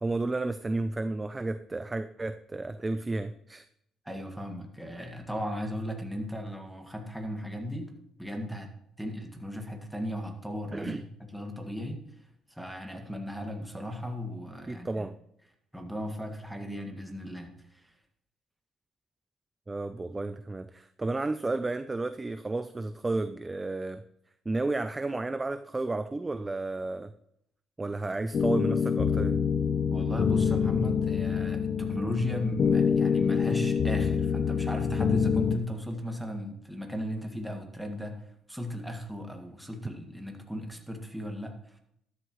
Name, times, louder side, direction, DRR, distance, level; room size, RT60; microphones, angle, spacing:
voice 1, 0.0-3.6 10.7-11.0 14.7-15.1 19.7-24.0 24.5-27.1 27.8-29.4, right 2 dB, 20° right, 10 dB, 0.5 m, -32 dB
voice 2, 4.1-8.7 9.0-10.9 11.3-12.0 12.5-15.1 15.7-17.9 29.9-38.2 38.5-41.8, equal, 5° right, 2 dB, 2.0 m, -36 dB
sound 1, 28.3-35.6, left 6 dB, 50° left, 0.6 m, -26 dB
13.0 x 11.5 x 3.2 m, 0.73 s
cardioid pair, 105°, 0 cm